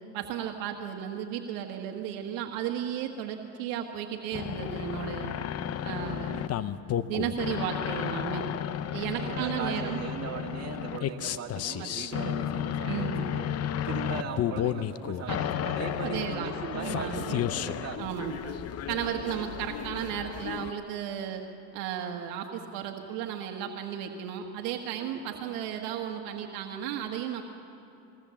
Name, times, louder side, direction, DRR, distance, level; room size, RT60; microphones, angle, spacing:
voice 1, 0.1-5.4 5.8-6.5 6.9-8.4 8.9-10.0 11.8-12.3 12.9-13.3 15.3-15.4 16.0-17.4 18.0-18.5 18.9-21.4 21.7-27.4, right 9 dB, 90° right, 3 dB, 1.5 m, -34 dB
sound 1, 4.3-20.7, left 10 dB, 45° left, 0.7 m, -33 dB
voice 2, 9.1-13.5 13.8-18.0 19.1-19.5 25.0-25.5, right 7 dB, 50° right, 0 dB, 2.5 m, -39 dB
21.5 x 18.0 x 7.1 m, 2.8 s
cardioid pair, 105°, 34 cm